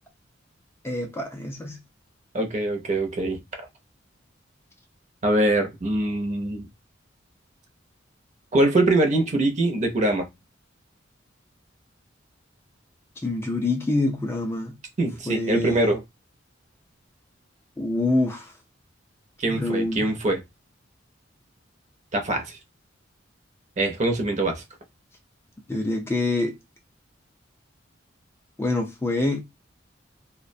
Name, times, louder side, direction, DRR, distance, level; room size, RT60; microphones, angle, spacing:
voice 1, 0.8-1.8 13.2-14.7 15.3-15.9 17.8-18.5 19.5-20.1 25.7-26.6 28.6-29.4, left 2 dB, 15° left, 0.3 m, -26 dB
voice 2, 2.3-3.4 5.2-6.7 8.5-10.3 15.0-16.0 19.4-20.4 22.1-22.6 23.8-24.6, right 2 dB, 40° right, 0.6 m, -23 dB
2.3 x 2.1 x 2.6 m
head